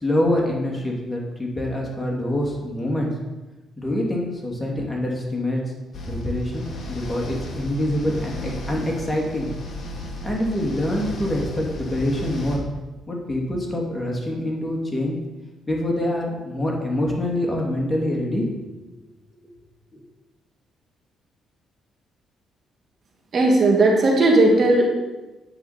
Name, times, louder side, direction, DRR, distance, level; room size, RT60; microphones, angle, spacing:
voice 1, 0.0-3.1 3.8-5.6 6.1-9.5 10.2-12.6 13.1-15.2 15.7-18.9 19.9-20.0, left 1 dB, 15° left, -2 dB, 2.7 m, -25 dB
sound 1, 5.9-12.6, left 1 dB, 45° left, 2.9 m, -34 dB
voice 2, 23.3-24.9, right 2 dB, 50° right, 0 dB, 2.3 m, -16 dB
10.0 x 8.5 x 4.4 m, 1.1 s
cardioid pair, 90°, 0 cm